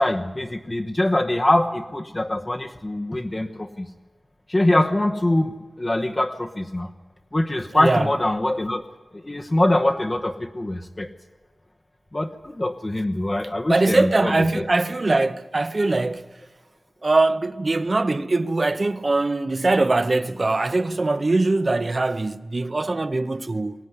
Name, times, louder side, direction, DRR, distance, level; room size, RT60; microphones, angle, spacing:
voice 1, 0.0-3.9 4.5-5.5 5.8-6.9 7.3-8.8 9.2-11.1 12.1-14.6, left 1 dB, 25° left, 1.0 m, -23 dB
voice 2, 7.7-8.1 13.7-16.3 17.0-23.7, right 2 dB, 45° right, 0.8 m, -22 dB
22.0 x 16.5 x 9.6 m
wide cardioid pair, 80°, 0 cm